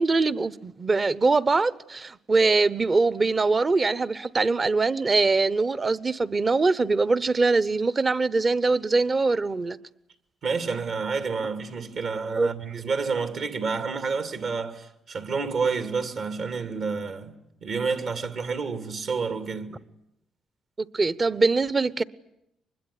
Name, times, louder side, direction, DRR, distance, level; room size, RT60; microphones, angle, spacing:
voice 1, 0.0-9.8 12.4-12.5 20.8-22.0, right 3 dB, 30° right, 0.9 m, -23 dB
voice 2, 10.4-19.8, right 5 dB, 60° right, 2.4 m, -29 dB
24.5 x 21.0 x 9.9 m
cardioid pair, 90°, 0 cm